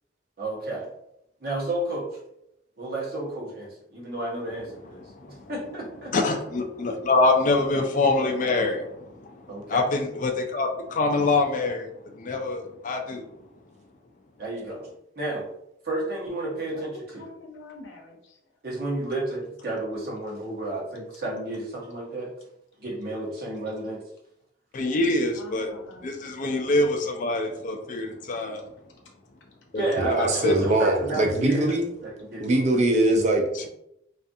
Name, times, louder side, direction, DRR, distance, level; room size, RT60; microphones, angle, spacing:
voice 1, 0.4-0.9 1.4-2.1 2.8-6.1 9.5-9.9 14.4-14.9 15.2-15.5 15.8-17.3 18.6-22.3 22.8-24.0 29.7-31.7 32.0-32.6, right 2 dB, 55° right, -4 dB, 0.9 m, -32 dB
voice 2, 4.8-5.5 6.1-13.2 24.7-25.7 26.0-28.7 29.7-30.5, left 2 dB, 45° left, 4 dB, 0.4 m, -25 dB
voice 3, 17.1-18.4 25.3-26.0, left 2 dB, 80° left, 1 dB, 0.7 m, -45 dB
voice 4, 30.0-31.9 32.4-33.7, right 1 dB, 40° right, 3 dB, 0.4 m, -22 dB
2.5 x 2.4 x 2.6 m, 0.80 s
head